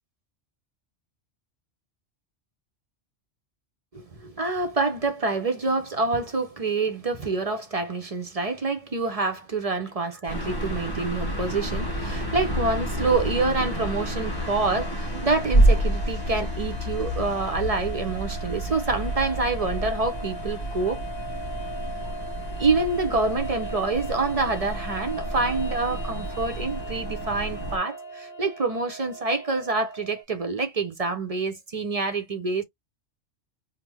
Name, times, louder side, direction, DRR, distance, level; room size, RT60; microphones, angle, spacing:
voice 1, 3.9-21.0 22.6-32.6, right 3 dB, 45° right, 0.5 m, -27 dB
sound 1, 10.3-27.8, right 1 dB, 20° left, 1.3 m, -29 dB
sound 2, 11.3-30.2, equal, 55° left, 1.5 m, -40 dB
3.5 x 2.0 x 3.3 m
omnidirectional pair, 1.2 m